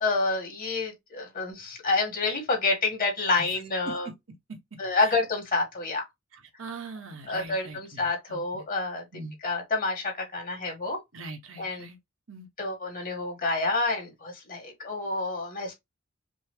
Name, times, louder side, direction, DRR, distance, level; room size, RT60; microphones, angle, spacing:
voice 1, 0.0-4.1 4.8-6.1 7.3-9.0 9.4-11.0 11.6-11.9 12.6-15.7, left 3 dB, 45° left, 1.8 m, -28 dB
voice 2, 6.3-8.6 9.1-9.4 11.1-12.0 12.3-12.5, right 3 dB, 70° right, 1.0 m, -42 dB
5.4 x 2.0 x 3.2 m
head